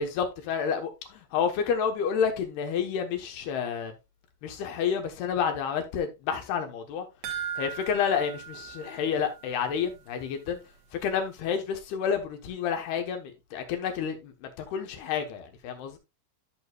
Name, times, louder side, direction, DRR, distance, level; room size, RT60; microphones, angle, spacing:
voice 1, 0.0-3.9 4.4-7.1 7.6-10.6 10.9-16.0, left 7 dB, 70° left, 3.0 m, -29 dB
sound 1, 7.2-9.8 10.1-10.2 10.6-10.7, right 8 dB, 70° right, 2.0 m, -38 dB
13.5 x 6.3 x 2.3 m
omnidirectional pair, 5.1 m